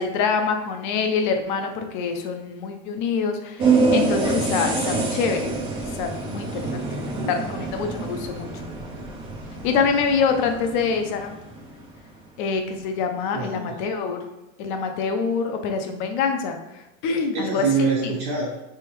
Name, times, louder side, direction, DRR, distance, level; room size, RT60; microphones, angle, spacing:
voice 1, 0.0-5.6 6.0-6.8 7.3-8.5 9.6-11.3 12.4-14.2 14.6-17.7 18.0-18.1, left 5 dB, 40° left, 5 dB, 0.5 m, -25 dB
sound 1, 3.6-12.0, right 3 dB, 15° right, 0.4 m, -26 dB
voice 2, 6.7-7.4 13.3-13.8 17.3-18.6, right 5 dB, 30° right, -5 dB, 0.8 m, -26 dB
3.5 x 3.4 x 4.5 m, 0.94 s
supercardioid pair, 165°, 41 cm